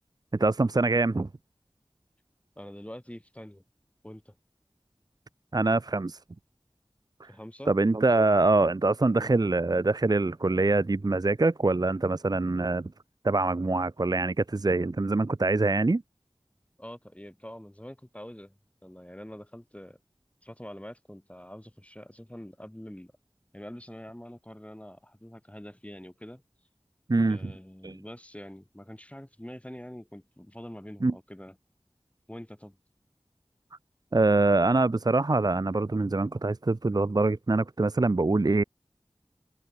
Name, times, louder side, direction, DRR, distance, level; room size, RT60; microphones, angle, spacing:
voice 1, 0.3-1.3 5.5-6.2 7.2-7.3 7.7-12.9 13.2-16.0 27.1-27.5 27.8-28.0 31.0-31.1 34.1-38.6, right 2 dB, 40° right, 0.6 m, -24 dB
voice 2, 2.6-3.6 4.0-4.3 7.3-7.7 9.1-9.4 16.8-20.0 20.4-23.1 23.5-26.4 27.3-31.6 32.3-32.8, equal, 15° left, 3.3 m, -45 dB
wide cardioid pair, 50°, 10 cm